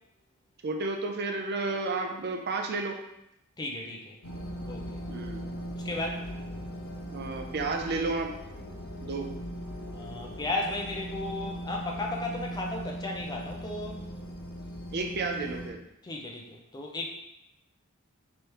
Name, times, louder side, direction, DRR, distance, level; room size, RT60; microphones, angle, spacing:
voice 1, 0.6-3.0 5.1-5.4 7.1-8.3 9.0-9.3 14.9-15.8, right 3 dB, 50° right, 3 dB, 0.5 m, -31 dB
voice 2, 3.6-4.1 4.6-4.9 5.7-6.2 9.9-14.0 16.0-17.1, left 2 dB, 20° left, 0 dB, 0.5 m, -35 dB
sound 1, 4.2-15.7, equal, 90° left, 0.9 m, -39 dB
3.2 x 3.0 x 4.7 m, 0.85 s
head